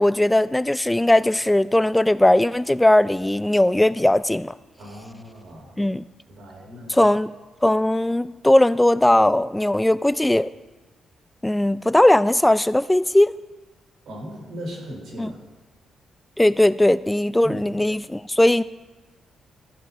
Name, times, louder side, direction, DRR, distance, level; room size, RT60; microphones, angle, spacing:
voice 1, 0.0-4.5 5.8-6.0 6.9-7.3 7.6-10.5 11.4-13.3 15.2-15.3 16.4-18.6, left 1 dB, 10° left, 15 dB, 0.3 m, -18 dB
voice 2, 4.8-5.8 6.4-6.9 14.1-15.4 17.4-17.7, equal, 70° right, 0 dB, 3.6 m, -37 dB
14.0 x 7.9 x 5.0 m, 1.2 s
supercardioid pair, 60°, 0 cm